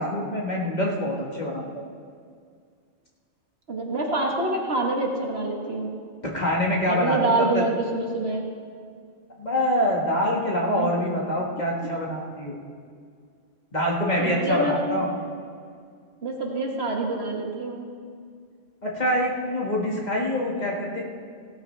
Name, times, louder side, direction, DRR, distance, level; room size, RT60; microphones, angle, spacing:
voice 1, 0.0-1.6 6.2-7.6 9.4-12.5 13.7-15.1 18.8-21.0, equal, 35° left, -3 dB, 1.8 m, -25 dB
voice 2, 3.7-5.9 6.9-8.4 10.7-10.9 14.2-15.0 16.2-17.8, right 2 dB, 55° right, 0 dB, 1.6 m, -26 dB
16.5 x 12.5 x 3.3 m, 2.1 s
omnidirectional pair, 1.3 m